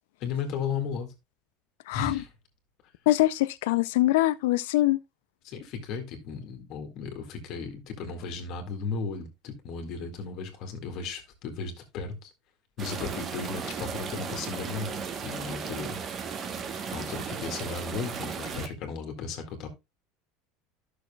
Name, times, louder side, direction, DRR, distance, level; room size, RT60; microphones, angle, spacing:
voice 1, 0.2-1.1 1.9-2.3 5.4-12.3 12.8-16.0 16.3-16.6 16.9-19.7, left 5 dB, 50° left, 1.9 m, -35 dB
voice 2, 1.9-2.2 3.1-5.0, left 16 dB, 85° left, 0.4 m, -23 dB
sound 1, 12.8-18.7, right 6 dB, 30° right, 1.0 m, -35 dB
12.0 x 6.3 x 2.3 m
supercardioid pair, 135°, 0 cm